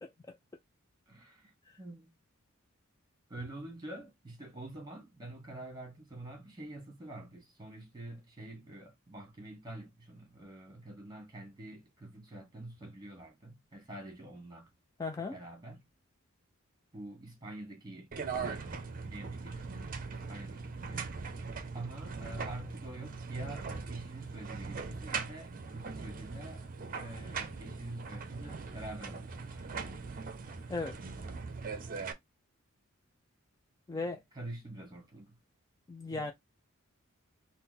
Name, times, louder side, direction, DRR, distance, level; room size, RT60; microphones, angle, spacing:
voice 1, 0.0-0.4 15.0-15.4 30.7-31.0 33.9-34.2 35.9-36.3, left 3 dB, 15° left, 0.3 m, -37 dB
voice 2, 1.1-2.2 3.3-14.8 15.3-15.8 16.9-19.7 20.0-21.1 21.7-29.6 33.9-35.4 36.1-36.3, right 1 dB, 20° right, 1.5 m, -47 dB
sound 1, 18.1-32.1, right 4 dB, 40° right, 0.6 m, -40 dB
3.9 x 2.0 x 4.0 m
head